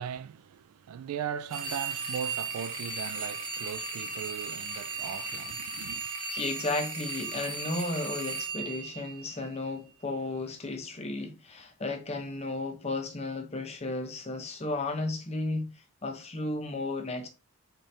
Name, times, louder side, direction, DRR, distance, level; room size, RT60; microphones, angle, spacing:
voice 1, 0.0-6.1, right 8 dB, 80° right, 0.3 m, -38 dB
sound 1, 1.5-9.7, right 4 dB, 65° right, 1.1 m, -36 dB
voice 2, 6.3-15.7 16.0-17.3, left 2 dB, 30° left, 0.7 m, -34 dB
4.2 x 3.7 x 3.2 m
head